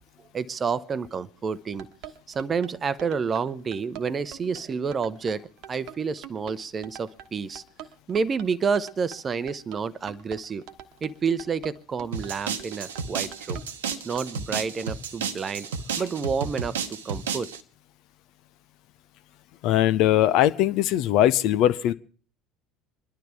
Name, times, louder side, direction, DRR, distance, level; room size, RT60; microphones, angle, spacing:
voice 1, 0.2-1.9 2.3-7.6 8.1-10.7 11.0-13.6 14.0-15.7 16.0-17.5, right 5 dB, 30° right, 15 dB, 0.8 m, -29 dB
sound 1, 1.5-14.3, right 10 dB, 55° right, 1.2 m, -44 dB
sound 2, 12.1-17.6, right 6 dB, 70° right, 1.0 m, -32 dB
voice 2, 19.6-21.9, left 12 dB, 50° left, 14 dB, 0.6 m, -20 dB
26.5 x 12.0 x 3.5 m, 0.43 s
figure-of-eight pair, 65°, 0 cm